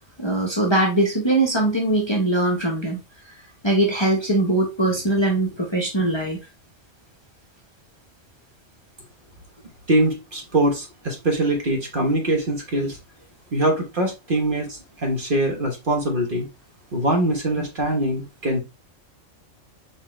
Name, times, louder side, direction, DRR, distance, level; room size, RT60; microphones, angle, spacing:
voice 1, 0.2-3.0 3.6-6.4, right 2 dB, 25° left, 0.9 m, -21 dB
voice 2, 9.9-13.0 13.5-16.5 16.9-18.6, right 1 dB, 45° right, 1.2 m, -23 dB
4.2 x 3.7 x 3.0 m
omnidirectional pair, 1.3 m